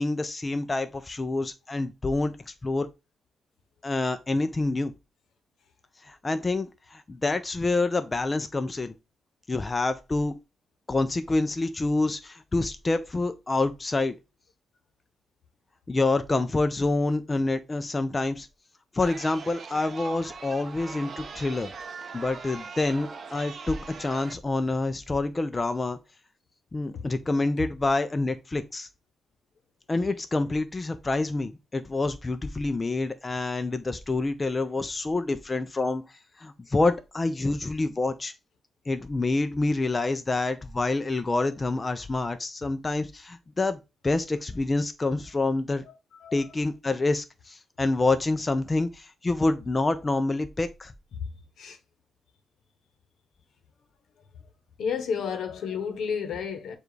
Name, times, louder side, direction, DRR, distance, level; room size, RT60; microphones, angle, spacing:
voice 1, 0.0-2.9 3.8-4.9 6.1-8.9 9.5-10.4 10.9-14.1 15.9-18.5 18.9-21.7 22.1-26.0 26.7-28.9 29.9-36.0 36.4-38.3 38.9-43.8 44.0-45.8 46.3-50.9, left 2 dB, 20° left, 0.4 m, -27 dB
Chatter, 19.0-24.3, right 5 dB, 45° right, 0.5 m, -41 dB
voice 2, 54.8-56.8, left 6 dB, 75° left, 0.8 m, -31 dB
7.0 x 2.3 x 3.1 m
wide cardioid pair, 155°, 0 cm